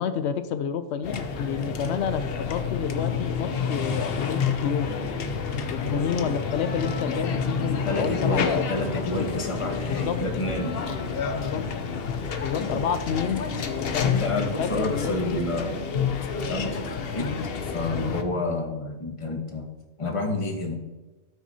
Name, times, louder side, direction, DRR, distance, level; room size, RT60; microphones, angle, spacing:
voice 1, 0.0-5.0 5.7-9.3 9.9-10.2 11.3-11.6 12.4-15.4 17.2-17.5, left 7 dB, 90° left, 10 dB, 0.9 m, -30 dB
sound 1, 1.0-18.2, left 5 dB, 65° left, 0.9 m, -29 dB
voice 2, 7.9-10.7 12.6-12.8 14.0-15.8 16.5-16.8 17.1-17.3 17.7-19.7 20.0-20.8, left 2 dB, 30° left, 3 dB, 1.1 m, -29 dB
13.0 x 6.1 x 2.8 m, 1.1 s
omnidirectional pair, 1.1 m